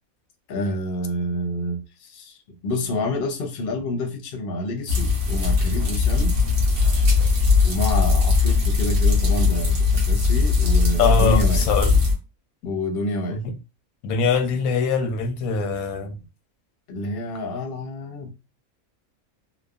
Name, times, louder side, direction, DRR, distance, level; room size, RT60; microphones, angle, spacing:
voice 1, 0.5-6.4 7.6-11.7 12.6-13.4 16.9-18.3, left 1 dB, 55° left, 0.7 m, -28 dB
sound 1, 4.9-12.1, left 4 dB, 60° right, 1.1 m, -19 dB
voice 2, 11.0-11.9 13.3-13.4 14.0-16.2, left 5 dB, 85° left, 1.0 m, -22 dB
3.1 x 2.0 x 2.4 m
omnidirectional pair, 1.5 m